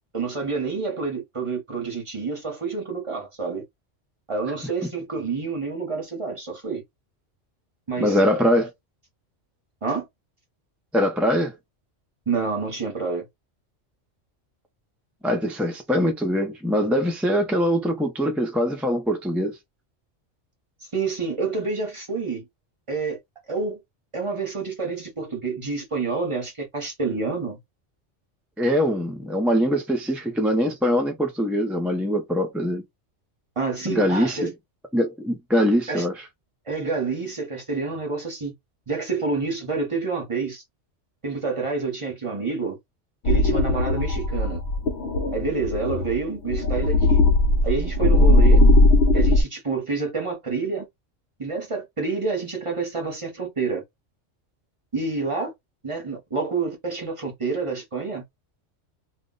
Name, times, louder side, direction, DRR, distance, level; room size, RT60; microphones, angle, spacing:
voice 1, 0.1-3.6 4.3-6.8 7.9-8.2 9.8-10.1 12.3-13.3 20.8-22.4 22.9-23.2 23.5-23.8 24.1-27.6 33.6-34.5 35.9-36.1 36.7-38.5 38.9-40.6 41.2-42.8 43.2-44.6 45.3-47.2 47.6-48.7 49.1-50.9 51.4-53.8 54.9-55.5 55.8-58.2, right 4 dB, 30° right, 0.9 m, -28 dB
voice 2, 8.0-8.7 10.9-11.5 15.2-19.6 28.6-32.8 33.9-34.5 34.9-36.3, equal, ahead, 0.3 m, -23 dB
sound 1, 43.2-49.4, left 2 dB, 70° left, 0.9 m, -18 dB
2.4 x 2.1 x 3.7 m
omnidirectional pair, 1.2 m